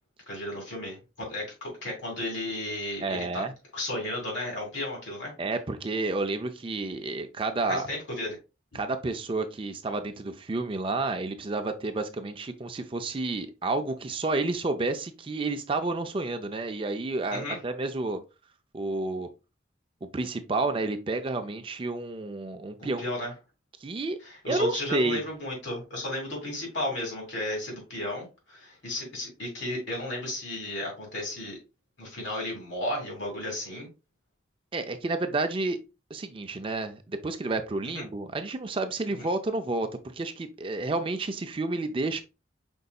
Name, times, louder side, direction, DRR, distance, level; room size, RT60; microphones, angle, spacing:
voice 1, 0.3-3.5 3.7-5.3 7.7-8.4 17.3-17.6 22.8-23.3 24.2-31.6 32.0-33.9 37.9-38.0, left 1 dB, 80° left, 2.7 m, -34 dB
voice 2, 3.0-3.5 5.4-7.9 8.7-18.2 18.7-19.3 20.0-23.0 23.8-24.2 24.5-25.2 34.7-35.8 36.1-42.2, right 2 dB, 30° right, 0.4 m, -30 dB
5.3 x 3.9 x 2.3 m
head